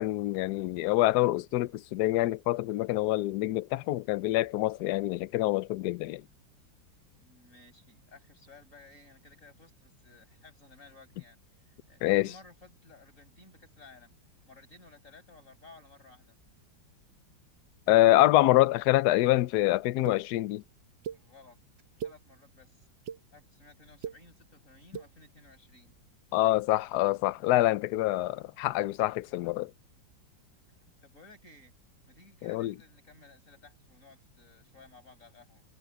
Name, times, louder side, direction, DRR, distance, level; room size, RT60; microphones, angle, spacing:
voice 1, 0.0-6.2 12.0-12.3 17.9-20.6 26.3-29.7 32.4-32.7, left 16 dB, 70° left, 1.0 m, -26 dB
voice 2, 7.2-11.4 11.7-14.1 14.5-16.4 21.1-21.6 22.0-22.9 23.3-26.0 30.7-31.7 32.1-35.6, left 3 dB, 40° left, 7.9 m, -56 dB
sound 1, 20.1-20.2 21.0-21.2 21.8-22.2 22.8-23.2 23.9-24.2 24.8-25.1, right 8 dB, 70° right, 1.7 m, -38 dB
omnidirectional pair, 2.1 m